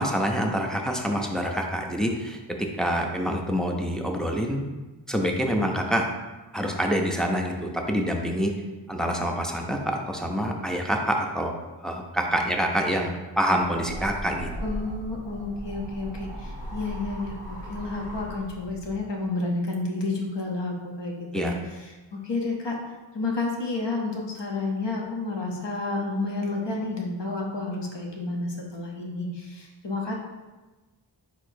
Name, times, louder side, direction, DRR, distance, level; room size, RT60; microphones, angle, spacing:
voice 1, 0.0-4.7 5.1-6.1 6.5-8.5 8.9-11.5 11.8-14.5 21.3-21.5, equal, ahead, 0 dB, 0.4 m, -26 dB
sound 1, 13.6-19.0, equal, 15° right, 0.8 m, -38 dB
voice 2, 14.6-22.8 23.1-30.1, left 3 dB, 65° left, -1 dB, 0.9 m, -30 dB
4.6 x 4.2 x 2.6 m, 1.2 s
wide cardioid pair, 85°, 46 cm